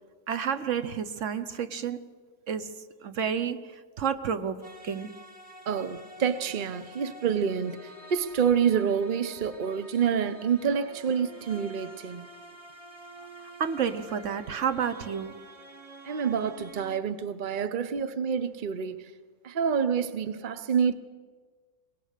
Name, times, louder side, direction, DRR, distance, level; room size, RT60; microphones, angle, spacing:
voice 1, 0.3-2.1 2.5-5.2 13.6-15.4, right 7 dB, 50° right, 1.0 m, -31 dB
sound 1, 4.6-17.0, right 1 dB, 20° right, 1.3 m, -48 dB
voice 2, 5.7-12.3 16.0-19.1 19.4-20.9, right 7 dB, 75° right, 0.4 m, -27 dB
23.0 x 20.5 x 6.6 m
omnidirectional pair, 2.0 m